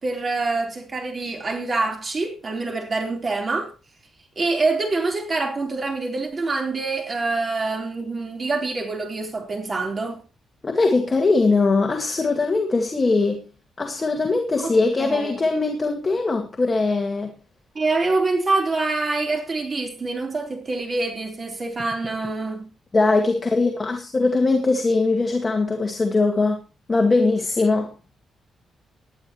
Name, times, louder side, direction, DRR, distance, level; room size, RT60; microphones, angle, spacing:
voice 1, 0.0-3.7 4.4-10.2 14.6-14.7 15.0-15.4 17.7-22.7, right 3 dB, 30° right, 4.0 m, -25 dB
voice 2, 10.6-13.4 13.8-17.3 22.9-26.6 26.9-27.9, left 3 dB, 25° left, 1.9 m, -21 dB
19.5 x 11.0 x 3.1 m
cardioid pair, 145°, 0 cm